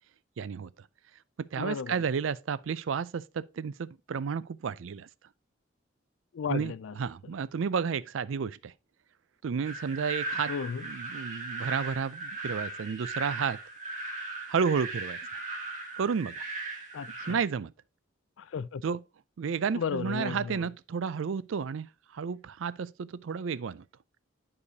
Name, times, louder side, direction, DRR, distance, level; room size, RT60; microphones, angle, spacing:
voice 1, 0.4-0.7 1.5-5.1 6.5-8.7 9.4-10.5 10.8-13.6 14.5-15.2 16.0-16.5 17.3-17.7 18.8-19.0 19.4-21.9 22.1-23.8, right 6 dB, 85° right, 0.4 m, -31 dB
voice 2, 1.6-2.0 6.3-7.0 10.5-10.8 16.9-17.4 18.4-18.8 19.8-20.7, left 6 dB, 85° left, 0.4 m, -34 dB
sound 1, 9.6-17.3, right 2 dB, 40° right, 2.0 m, -38 dB
10.5 x 4.9 x 2.7 m
head